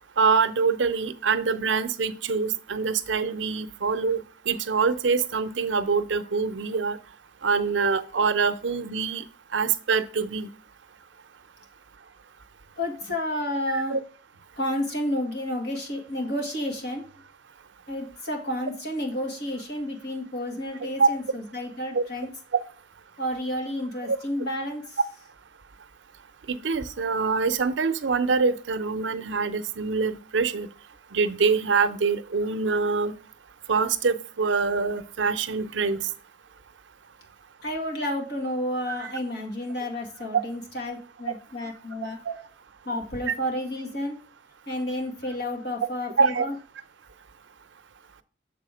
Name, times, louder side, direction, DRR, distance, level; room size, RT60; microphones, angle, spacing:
voice 1, 0.2-7.0 7.4-9.2 9.5-10.5 13.7-14.0 21.0-21.1 21.9-22.0 24.0-24.2 26.5-30.7 31.1-33.1 33.7-36.1 38.9-39.1 42.2-42.4 43.3-43.4 46.2-46.5, right 5 dB, 90° right, 12 dB, 0.6 m, -25 dB
voice 2, 12.8-14.0 14.6-17.0 17.9-22.3 23.2-24.8 37.6-42.2 42.9-44.2 44.7-46.5, left 1 dB, 60° left, 1 dB, 1.8 m, -31 dB
7.1 x 4.1 x 4.9 m, 0.40 s
head